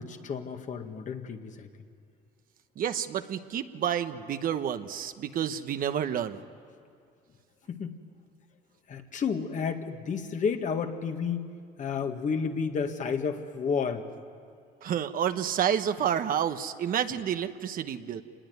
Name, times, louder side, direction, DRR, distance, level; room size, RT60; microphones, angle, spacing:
voice 1, 0.0-1.7 7.7-8.0 8.9-11.5 11.8-14.0, left 6 dB, 45° left, 5 dB, 2.0 m, -31 dB
voice 2, 2.8-6.4 14.8-18.2, right 9 dB, 55° right, 9 dB, 1.1 m, -29 dB
26.0 x 20.0 x 9.5 m, 2.4 s
cardioid pair, 110°, 17 cm